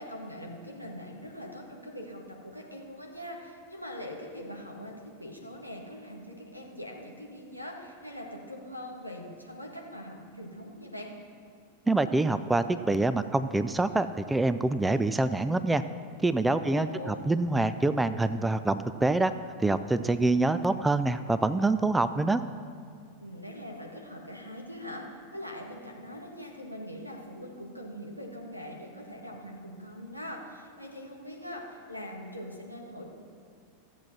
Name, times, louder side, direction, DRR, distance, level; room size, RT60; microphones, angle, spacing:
voice 1, 0.0-11.1 16.6-17.4 23.2-25.0 25.3-33.1, equal, 90° right, 0 dB, 1.6 m, -42 dB
voice 2, 11.9-15.8 16.2-19.3 19.6-22.4, right 2 dB, 10° right, 12 dB, 0.4 m, -26 dB
14.0 x 7.4 x 5.9 m, 2.1 s
figure-of-eight pair, 90°, 0 cm